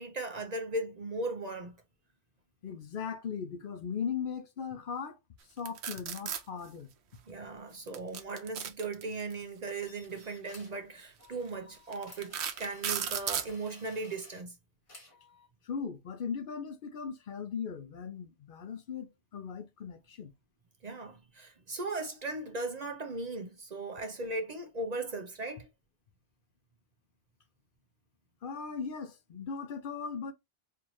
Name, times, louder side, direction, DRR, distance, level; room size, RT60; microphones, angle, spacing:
voice 1, 0.0-1.8 7.3-14.6 20.8-25.7, right 2 dB, 45° right, 0.6 m, -37 dB
voice 2, 2.6-6.9 15.6-20.3 28.4-30.3, left 6 dB, 60° left, 0.7 m, -38 dB
sound 1, 5.7-6.4 7.9-9.3 10.5-10.7 11.2-11.3 11.9-13.5, right 8 dB, 85° right, 0.9 m, -34 dB
sound 2, 9.8-10.8 11.2-14.4 14.9-15.5, left 2 dB, 35° left, 1.0 m, -56 dB
4.5 x 2.5 x 2.9 m
omnidirectional pair, 1.1 m